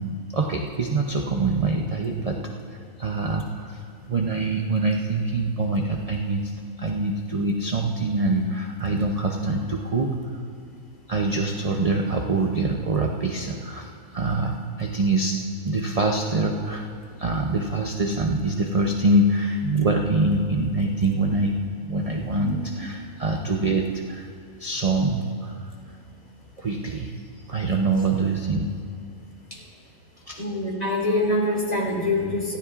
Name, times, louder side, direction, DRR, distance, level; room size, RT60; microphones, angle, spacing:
voice 1, 0.0-2.5 3.0-3.8 4.1-6.5 6.8-10.1 11.1-16.8 17.2-24.3 24.6-25.6 26.6-27.1 27.5-28.7 30.3-30.4, right 2 dB, 40° right, 1 dB, 0.5 m, -24 dB
voice 2, 30.4-32.6, left 1 dB, 25° left, -4 dB, 3.4 m, -25 dB
27.0 x 15.0 x 2.5 m, 2.3 s
omnidirectional pair, 1.6 m